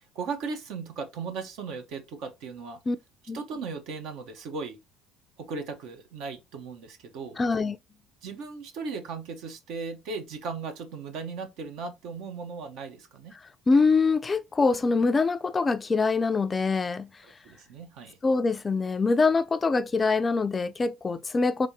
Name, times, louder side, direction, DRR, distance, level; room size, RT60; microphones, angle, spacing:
voice 1, 0.1-2.8 3.3-4.8 5.4-7.4 8.2-13.3 17.4-18.2, right 4 dB, 70° right, 1.1 m, -37 dB
voice 2, 7.4-7.8 13.7-17.2 18.2-21.7, left 4 dB, 25° left, 0.4 m, -24 dB
3.7 x 3.4 x 2.7 m
supercardioid pair, 85°, 0 cm